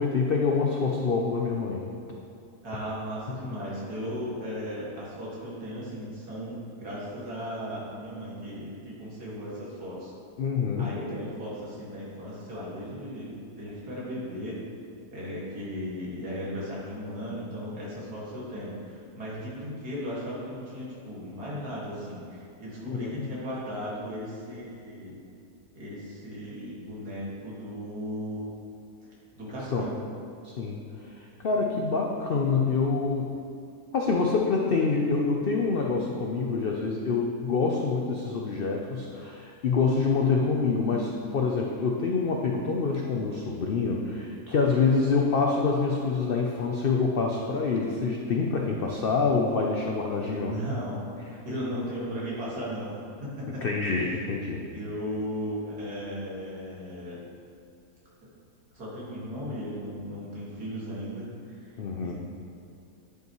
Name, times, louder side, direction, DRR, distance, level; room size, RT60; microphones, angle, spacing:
voice 1, 0.0-1.8 10.4-10.9 22.8-23.3 29.7-29.8 30.4-33.4 33.9-50.6 53.5-54.6 61.8-62.1, left 4 dB, 85° left, 0 dB, 0.5 m, -26 dB
voice 2, 2.6-10.1 10.8-14.6 15.1-25.1 25.7-28.4 29.4-30.0 50.3-53.6 54.1-54.2 54.7-57.2 58.7-61.7 62.0-62.1, equal, 75° right, -7 dB, 2.5 m, -36 dB
10.0 x 5.4 x 3.0 m, 2.5 s
omnidirectional pair, 1.7 m